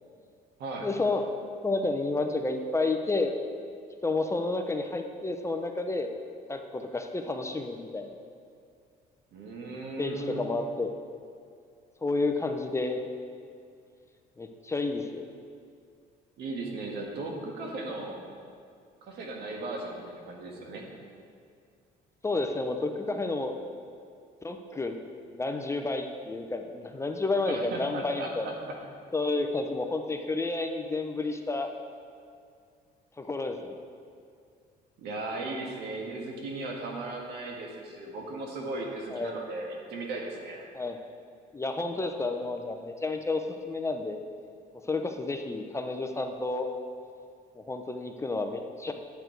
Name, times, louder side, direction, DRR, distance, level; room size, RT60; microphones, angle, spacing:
voice 1, 0.8-3.4 4.0-6.1 6.5-8.1 10.0-11.0 12.0-13.0 14.4-15.2 22.2-23.6 24.4-25.0 25.3-28.5 29.1-31.7 33.2-33.8 39.1-39.4 40.7-41.0 41.5-44.2 44.9-46.7 47.6-48.9, left 3 dB, 15° left, 5 dB, 0.6 m, -30 dB
voice 2, 9.3-10.4 16.4-18.2 19.0-20.8 27.4-28.8 35.0-40.7, right 2 dB, 75° right, 0 dB, 1.8 m, -37 dB
10.5 x 8.1 x 4.5 m, 2.3 s
cardioid pair, 110°, 17 cm